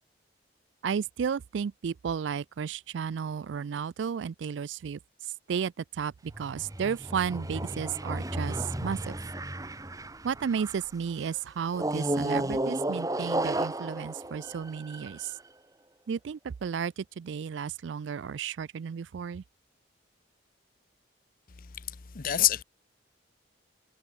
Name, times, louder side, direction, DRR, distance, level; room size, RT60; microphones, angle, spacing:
voice 1, 0.8-5.0 5.5-8.6 8.8-9.1 10.2-15.3 16.1-19.4, right 7 dB, 75° right, 0.4 m, -33 dB
sound 1, 6.3-10.9 11.7-15.3, right 1 dB, 20° right, 1.7 m, -33 dB
voice 2, 21.5-22.6, left 13 dB, 50° left, 0.7 m, -28 dB
head